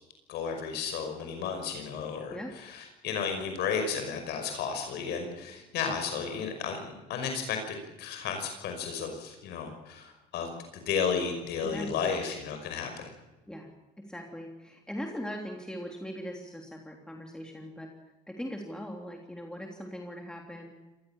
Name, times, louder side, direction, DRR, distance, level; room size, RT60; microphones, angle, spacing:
voice 1, 0.3-6.8 7.1-13.1, left 6 dB, 80° left, 5 dB, 5.6 m, -33 dB
voice 2, 11.6-11.9 13.5-13.7 14.0-17.9 18.3-20.7, equal, 5° left, 1 dB, 3.4 m, -40 dB
25.5 x 19.5 x 7.4 m, 1.1 s
cardioid pair, 110°, 17 cm